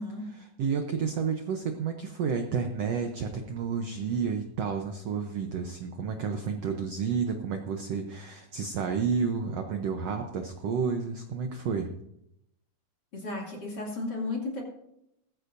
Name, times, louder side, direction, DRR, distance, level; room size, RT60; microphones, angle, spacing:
voice 1, 0.3-11.9, right 6 dB, 80° right, 5 dB, 1.4 m, -31 dB
voice 2, 13.1-14.6, left 2 dB, 30° left, -2 dB, 2.9 m, -34 dB
19.0 x 15.0 x 2.7 m, 0.80 s
omnidirectional pair, 4.2 m